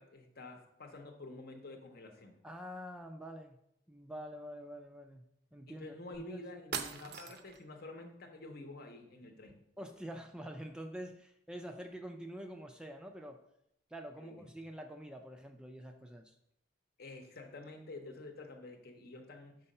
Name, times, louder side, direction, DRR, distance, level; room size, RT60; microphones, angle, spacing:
voice 1, 0.0-2.4 5.7-9.6 14.2-14.5 17.0-19.6, left 2 dB, 55° left, 4 dB, 0.9 m, -49 dB
voice 2, 2.4-3.6 3.9-5.3 5.5-5.9 6.3-6.4 9.8-13.4 13.9-16.3, equal, 5° right, 5 dB, 0.4 m, -46 dB
sound 1, 6.1-6.2 6.7-7.6, right 6 dB, 60° right, 0.5 m, -40 dB
5.6 x 3.9 x 5.4 m, 0.77 s
head